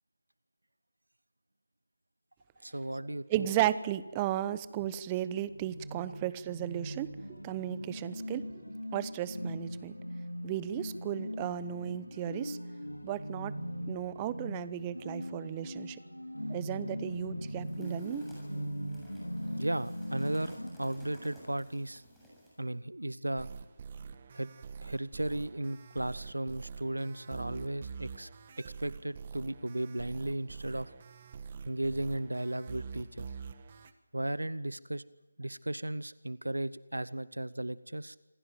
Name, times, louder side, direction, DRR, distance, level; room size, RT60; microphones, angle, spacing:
voice 1, 2.6-3.5 19.6-22.0 22.6-23.5 24.3-24.5 24.8-28.3 28.8-30.9 31.7-33.3 34.1-35.0 35.4-38.2, right 1 dB, 80° right, 18 dB, 1.0 m, -35 dB
voice 2, 3.3-8.6 8.9-10.0 10.4-12.6 13.0-13.6 13.9-16.0 16.5-18.2, right 12 dB, 20° right, 16 dB, 0.9 m, -35 dB
sound 1, 5.3-20.7, equal, 90° left, 4.3 m, -40 dB
sound 2, 17.6-22.6, equal, ahead, 7.7 m, -54 dB
sound 3, 23.4-33.9, right 5 dB, 35° right, 1.5 m, -45 dB
27.0 x 17.0 x 9.2 m, 1.0 s
figure-of-eight pair, 155°, 0 cm